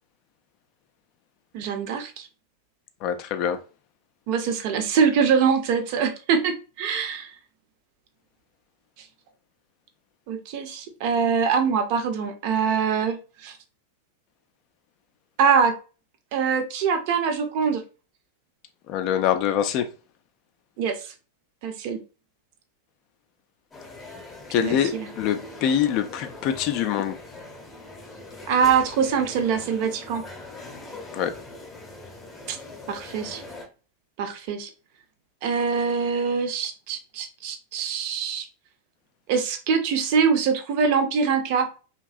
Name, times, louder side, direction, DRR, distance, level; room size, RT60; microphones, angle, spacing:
voice 1, 1.5-2.3 4.3-7.3 10.3-13.6 15.4-15.7 16.3-17.8 20.8-21.1 21.6-22.0 24.6-25.1 28.5-30.2 32.5-32.6 32.9-33.4 34.2-34.7 35.4-38.5 39.3-41.7, right 6 dB, 45° right, 0.5 m, -24 dB
voice 2, 3.0-3.6 18.9-19.9 24.5-27.2 31.1-31.3, left 9 dB, 40° left, 0.3 m, -24 dB
sound 1, 23.7-33.7, left 2 dB, 20° left, 0.8 m, -42 dB
2.9 x 2.6 x 2.4 m
figure-of-eight pair, 90°, 0 cm